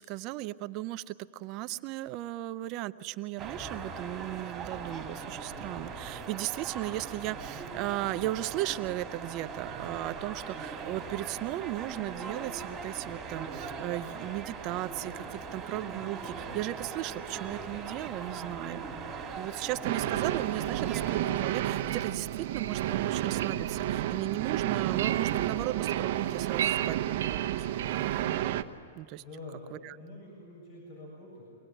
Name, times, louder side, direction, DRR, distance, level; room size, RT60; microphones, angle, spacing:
voice 1, 0.0-18.8 19.4-27.0 27.2-27.7 29.0-29.2 29.7-30.0, right 16 dB, 35° right, 12 dB, 0.6 m, -36 dB
sound 1, 3.4-21.1, right 5 dB, 15° right, 3.1 m, -40 dB
sound 2, 19.8-28.6, right 13 dB, 50° right, 1.0 m, -31 dB
sound 3, 21.6-28.4, right 10 dB, 70° right, 1.1 m, -38 dB
voice 2, 29.2-31.4, left 2 dB, 45° left, -2 dB, 7.3 m, -46 dB
24.5 x 18.5 x 9.1 m, 2.5 s
hypercardioid pair, 150°, 0 cm